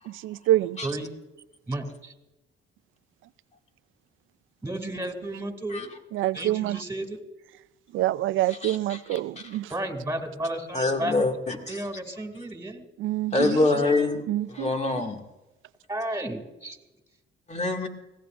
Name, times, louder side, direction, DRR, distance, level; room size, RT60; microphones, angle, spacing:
voice 1, 0.1-0.9 6.1-6.8 7.9-9.7 13.0-13.6 14.3-14.7, right 14 dB, 80° right, 0.5 m, -26 dB
voice 2, 0.8-1.2 1.7-2.1 4.6-5.9 6.3-7.2 9.7-11.2 11.7-12.9 13.4-14.1 15.9-16.8, right 1 dB, 15° right, 2.6 m, -33 dB
voice 3, 10.7-11.8 13.3-14.2 14.5-15.2 17.5-17.9, left 2 dB, 35° left, 2.2 m, -25 dB
22.5 x 17.5 x 2.6 m
cardioid pair, 90°, 20 cm